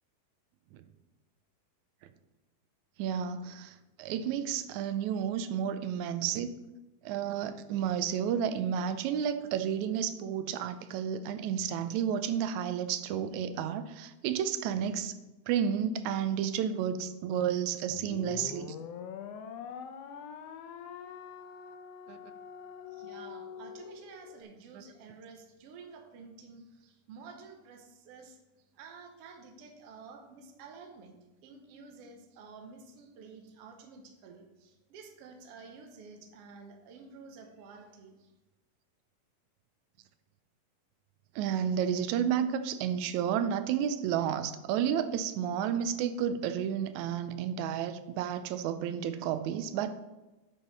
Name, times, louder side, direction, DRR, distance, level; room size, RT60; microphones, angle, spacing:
voice 1, 3.0-6.5 7.0-15.1 15.5-18.8 22.1-22.2 41.4-49.9, right 8 dB, 80° right, 10 dB, 1.9 m, -31 dB
sound 1, 17.9-24.4, left 7 dB, 80° left, 1.4 m, -44 dB
voice 2, 22.9-28.4 28.7-31.2 31.4-38.3, right 4 dB, 65° right, 3 dB, 1.7 m, -51 dB
10.5 x 5.5 x 4.1 m, 1.0 s
omnidirectional pair, 3.5 m